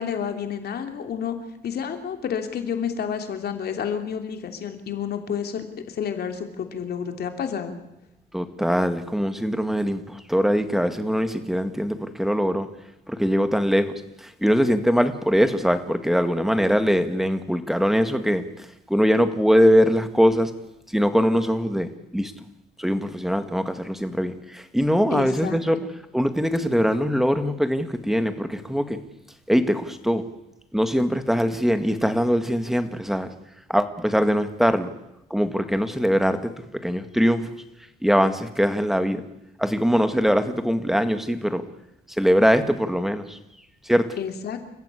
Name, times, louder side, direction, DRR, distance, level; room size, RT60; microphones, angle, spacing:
voice 1, 0.0-1.4 1.6-7.8 25.1-25.8 44.2-44.6, left 7 dB, 65° left, 6 dB, 3.0 m, -30 dB
voice 2, 8.3-12.7 13.1-20.5 20.9-22.3 22.8-25.8 26.1-29.0 29.5-30.2 30.7-33.3 33.7-34.9 35.3-37.6 38.0-39.2 39.6-41.6 42.2-43.4 43.8-44.1, equal, ahead, 9 dB, 1.9 m, -22 dB
29.0 x 15.0 x 8.4 m, 0.87 s
cardioid pair, 130°, 18 cm